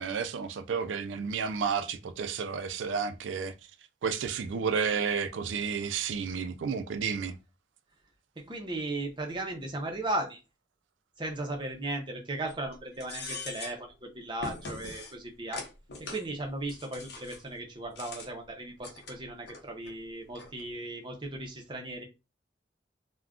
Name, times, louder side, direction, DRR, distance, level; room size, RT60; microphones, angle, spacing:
voice 1, 0.0-3.5 4.0-7.3, right 6 dB, 85° right, 0.4 m, -31 dB
voice 2, 8.4-10.4 11.2-15.6 16.1-22.0, right 2 dB, 25° right, 0.6 m, -36 dB
sound 1, 12.5-12.7 13.0-13.8 14.4-15.1 15.5-16.2 16.7-17.4 17.9-18.3 18.8-19.6 19.9-20.0 20.4-20.6, left 3 dB, 60° left, 0.7 m, -41 dB
2.4 x 2.2 x 3.5 m
head